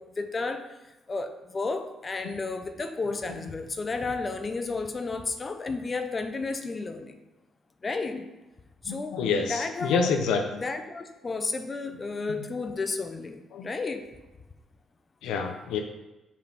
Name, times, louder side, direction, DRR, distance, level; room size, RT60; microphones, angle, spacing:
voice 1, 0.0-7.2 7.8-8.3 8.8-10.1 10.5-14.2, left 3 dB, 30° left, 7 dB, 0.7 m, -32 dB
voice 2, 8.9-10.5 12.3-12.4 13.5-13.7 15.2-15.8, left 5 dB, 90° left, 4 dB, 0.7 m, -27 dB
5.5 x 4.8 x 6.0 m, 1.0 s
cardioid pair, 90°, 0 cm